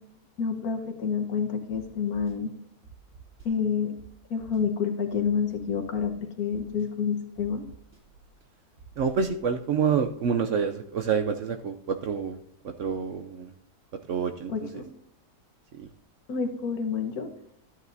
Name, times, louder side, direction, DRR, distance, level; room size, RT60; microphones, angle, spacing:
voice 1, 0.4-2.5 3.4-3.9 4.3-7.6 14.5-14.9 16.3-17.3, left 6 dB, 70° left, 5 dB, 1.7 m, -28 dB
sound 1, 1.7-1.8 2.1-2.3 2.8-3.5 4.0-4.1 4.4-4.6 5.1-6.0 6.5-6.9 7.4-8.0 8.8-9.1, right 4 dB, 30° right, 3.7 m, -51 dB
voice 2, 9.0-12.4 12.8-13.5 14.1-14.5 15.8-15.9, right 6 dB, 60° right, 6 dB, 0.9 m, -27 dB
13.0 x 9.4 x 2.7 m, 0.71 s
omnidirectional pair, 1.6 m